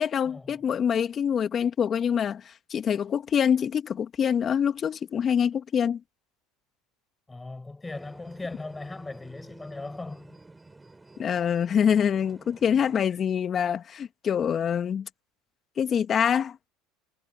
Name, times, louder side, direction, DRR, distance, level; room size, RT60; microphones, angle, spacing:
voice 1, 0.0-6.0 11.2-15.1 15.8-16.6, left 8 dB, 40° left, 2.0 m, -25 dB
voice 2, 7.3-10.4, left 3 dB, 15° left, 7.2 m, -38 dB
sound 1, 7.8-13.0, right 2 dB, 15° right, 7.1 m, -51 dB
hypercardioid pair, 80°, 0 cm